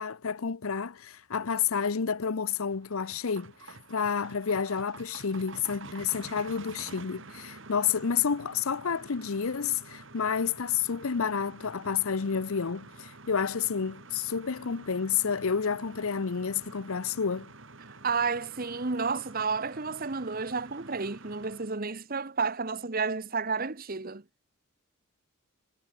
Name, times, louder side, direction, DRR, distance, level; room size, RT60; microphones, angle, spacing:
voice 1, 0.0-17.5, left 6 dB, 75° left, 0.7 m, -30 dB
sound 1, 2.4-21.8, right 3 dB, 60° right, 2.9 m, -49 dB
voice 2, 17.9-24.2, right 4 dB, 40° right, 1.1 m, -31 dB
head